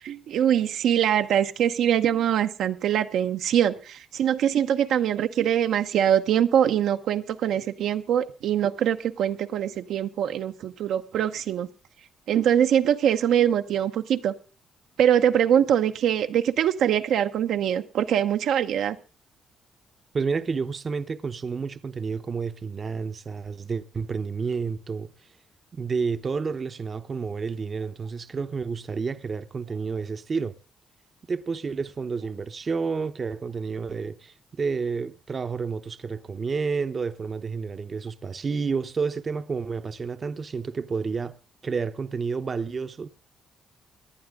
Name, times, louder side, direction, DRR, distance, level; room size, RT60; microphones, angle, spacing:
voice 1, 0.0-11.7 12.3-14.3 15.0-19.0, right 9 dB, 75° right, 0.9 m, -23 dB
voice 2, 20.1-25.1 25.7-30.5 31.3-41.3 41.6-43.1, right 5 dB, 40° right, 0.8 m, -30 dB
19.0 x 11.0 x 3.7 m
cardioid pair, 90°, 0 cm